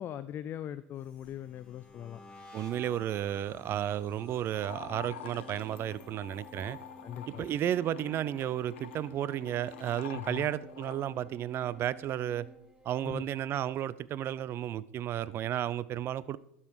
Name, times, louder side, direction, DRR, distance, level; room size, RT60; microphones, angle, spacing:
voice 1, 0.0-2.2 7.0-7.5 10.1-10.5 13.0-13.3, left 10 dB, 40° left, 0.4 m, -40 dB
sound 1, 0.9-10.1 10.4-10.8 11.2-12.7, left 2 dB, 15° left, 2.1 m, -56 dB
voice 2, 2.5-6.8 7.3-12.5 12.8-16.4, right 11 dB, 40° right, 0.4 m, -33 dB
sound 2, 4.5-11.0, left 9 dB, 85° left, 0.9 m, -48 dB
sound 3, 4.7-13.4, left 1 dB, 10° right, 1.4 m, -54 dB
12.0 x 5.6 x 4.7 m
hypercardioid pair, 95°, 6 cm